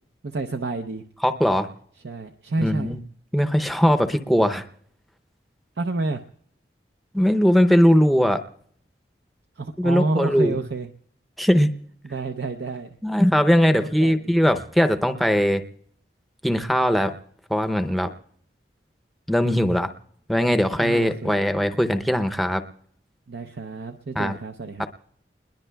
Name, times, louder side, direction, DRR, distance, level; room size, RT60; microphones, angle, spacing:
voice 1, 0.2-1.0 2.0-3.0 5.8-6.2 9.6-10.9 12.0-13.0 13.7-14.4 20.8-21.4 23.3-24.9, right 3 dB, 80° right, 6 dB, 0.6 m, -29 dB
voice 2, 1.2-1.7 2.6-3.0 3.3-4.6 7.1-8.4 9.8-10.6 11.4-11.7 13.0-15.6 16.4-17.1 17.5-18.1 19.3-19.9 20.3-22.6 24.2-24.4, equal, ahead, 9 dB, 0.6 m, -20 dB
29.0 x 21.0 x 2.3 m, 0.64 s
head